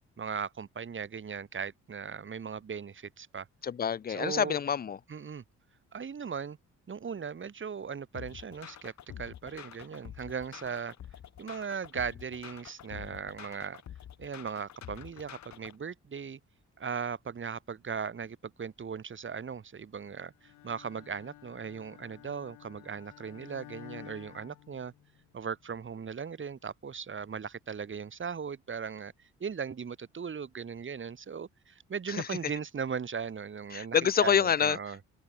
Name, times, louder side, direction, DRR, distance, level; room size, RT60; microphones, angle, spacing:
voice 1, 0.0-3.5 4.1-4.6 5.1-5.4 5.9-6.6 6.9-10.9 11.4-13.8 14.2-16.4 16.8-24.9 25.3-35.0, right 6 dB, 40° right, 3.5 m, -38 dB
voice 2, 3.6-5.0 32.1-32.4 33.7-34.8, left 7 dB, 30° left, 0.6 m, -27 dB
sound 1, 8.1-15.8, left 10 dB, 65° left, 4.6 m, -47 dB
Bowed string instrument, 20.4-25.4, left 15 dB, 85° left, 4.0 m, -52 dB
open air
cardioid pair, 90°, 30 cm